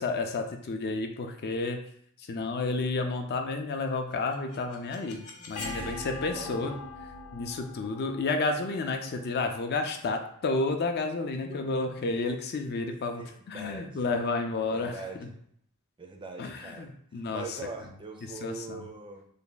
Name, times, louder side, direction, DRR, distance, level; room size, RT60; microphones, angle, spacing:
voice 1, 0.0-1.8 2.3-6.8 7.3-14.9 16.4-16.9 17.1-17.4 18.4-18.8, left 3 dB, 45° left, 5 dB, 0.4 m, -31 dB
sound 1, 4.1-10.0, left 2 dB, 80° left, 0.8 m, -42 dB
voice 2, 6.3-6.9 11.5-11.7 12.9-14.1 14.7-15.3 16.0-19.3, right 3 dB, 20° right, 3 dB, 0.4 m, -43 dB
3.4 x 2.2 x 3.9 m, 0.67 s
head